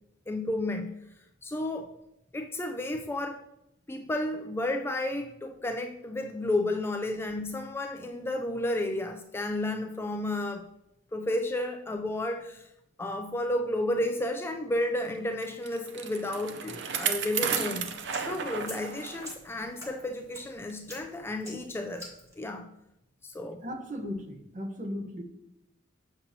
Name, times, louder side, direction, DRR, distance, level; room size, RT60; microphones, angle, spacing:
voice 1, 0.3-0.9 1.4-1.9 2.3-3.4 3.9-10.6 11.1-12.7 13.0-17.9 18.1-22.1 22.4-22.7 23.2-23.6, left 1 dB, 10° left, 4 dB, 0.3 m, -32 dB
Bicycle, 15.4-19.4 19.8-19.9 20.7-20.8, right 7 dB, 60° right, 0.5 m, -33 dB
sound 1, 17.0-22.3, equal, 15° right, 1.4 m, -47 dB
voice 2, 23.6-25.2, left 1 dB, 40° right, 2 dB, 0.8 m, -36 dB
7.0 x 6.7 x 2.7 m, 0.84 s
head